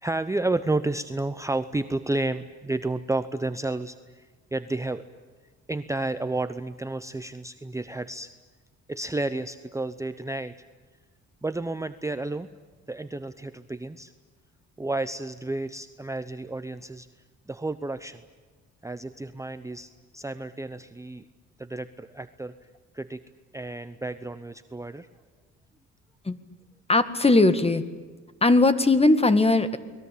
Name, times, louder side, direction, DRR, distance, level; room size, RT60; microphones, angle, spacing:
voice 1, 0.0-5.0 5.7-8.3 8.9-10.5 11.4-12.5 12.9-14.1 14.8-17.1 17.5-18.2 18.8-21.3 21.6-22.5 22.9-23.2 23.5-25.1, right 2 dB, 10° right, 11 dB, 0.8 m, -31 dB
voice 2, 26.9-27.9 28.4-29.8, left 2 dB, 20° left, 12 dB, 1.9 m, -19 dB
29.5 x 21.0 x 8.6 m, 1.4 s
cardioid pair, 90°, 30 cm